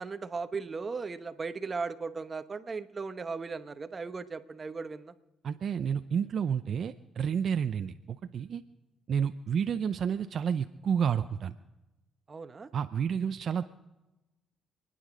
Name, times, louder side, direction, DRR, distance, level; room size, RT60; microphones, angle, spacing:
voice 1, 0.0-5.1 12.3-12.7, right 4 dB, 35° right, 10 dB, 1.0 m, -37 dB
voice 2, 5.4-8.6 9.1-11.5 12.7-13.6, right 7 dB, 60° right, 9 dB, 0.5 m, -30 dB
27.5 x 10.0 x 5.0 m, 1.0 s
cardioid pair, 90°, 0 cm